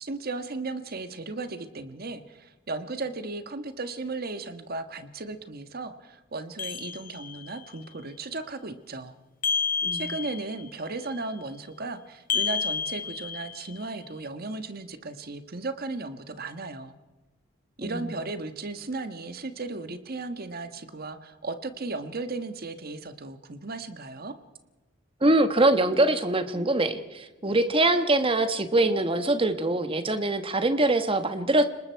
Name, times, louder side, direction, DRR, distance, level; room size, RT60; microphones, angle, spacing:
voice 1, 0.0-9.1 9.9-16.9 17.8-24.3, right 3 dB, 50° right, 9 dB, 1.4 m, -36 dB
sound 1, 6.6-7.6 9.4-10.7 12.3-13.8, left 6 dB, 45° left, 1.1 m, -30 dB
voice 2, 9.8-10.1 17.8-18.1 25.2-31.7, right 2 dB, 25° right, 9 dB, 1.3 m, -23 dB
29.5 x 20.0 x 4.6 m, 1.2 s
head